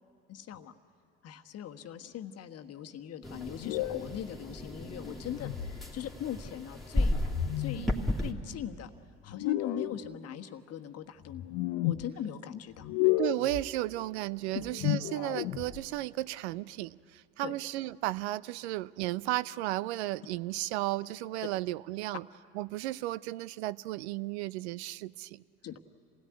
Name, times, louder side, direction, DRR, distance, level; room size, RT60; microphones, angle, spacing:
voice 1, 0.3-0.7 1.2-7.2 7.6-7.9 8.2-8.9 9.2-11.4 11.8-12.9 14.5-14.6 17.4-17.5 21.4-21.5 25.6-25.8, left 10 dB, 45° left, 7 dB, 1.3 m, -40 dB
sound 1, 3.2-8.3, left 1 dB, ahead, 2.8 m, -34 dB
sound 2, 3.6-4.2 5.2-5.8 7.2-7.9 9.3-10.0 11.2-12.0 12.8-13.6 14.6-15.8, left 14 dB, 65° left, 0.9 m, -32 dB
voice 2, 13.2-22.2 22.5-25.4, right 17 dB, 75° right, 20 dB, 0.5 m, -34 dB
26.5 x 17.5 x 9.6 m, 2.4 s
hypercardioid pair, 60°, 33 cm